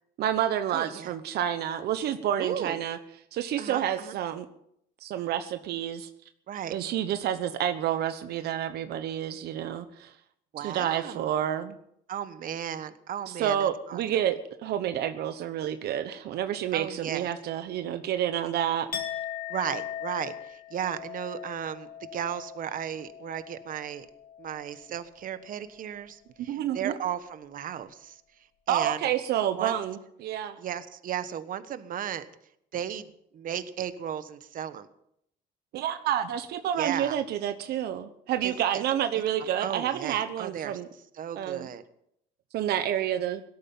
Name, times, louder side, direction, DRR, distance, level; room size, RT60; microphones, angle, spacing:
voice 1, 0.2-3.0 3.3-4.5 5.0-6.1 6.7-10.1 10.6-11.7 13.3-18.9 26.5-27.0 28.7-30.6 35.7-40.9 41.4-41.7 42.5-43.4, right 10 dB, 70° right, 9 dB, 1.1 m, -29 dB
voice 2, 0.7-1.1 2.4-2.8 3.6-4.1 6.5-6.7 10.5-11.3 12.1-14.0 16.7-17.3 19.5-24.1 24.4-28.2 28.7-29.0 29.5-29.7 30.6-32.3 32.7-33.1 33.3-34.9 36.8-37.2 38.4-38.8 39.6-40.8 41.2-41.8, right 9 dB, 55° right, 12 dB, 1.2 m, -35 dB
Chink clink, 18.9-24.9 25.2-25.6, left 9 dB, 55° left, 2.2 m, -39 dB
17.5 x 13.0 x 5.6 m, 0.73 s
cardioid pair, 110°, 17 cm